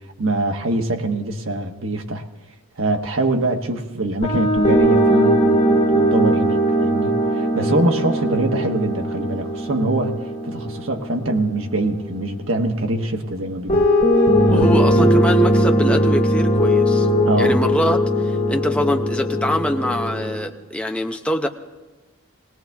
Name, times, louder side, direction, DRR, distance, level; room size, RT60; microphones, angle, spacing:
voice 1, 0.2-2.2 2.8-10.2 10.4-13.9 14.5-15.0 17.3-17.6, right 2 dB, 80° right, 4 dB, 1.2 m, -23 dB
sound 1, 4.2-12.3 13.7-20.4, equal, 35° left, 3.0 m, -19 dB
voice 2, 14.5-17.1 17.4-21.5, equal, 5° left, 4 dB, 0.7 m, -24 dB
19.5 x 18.5 x 3.5 m, 1.2 s
head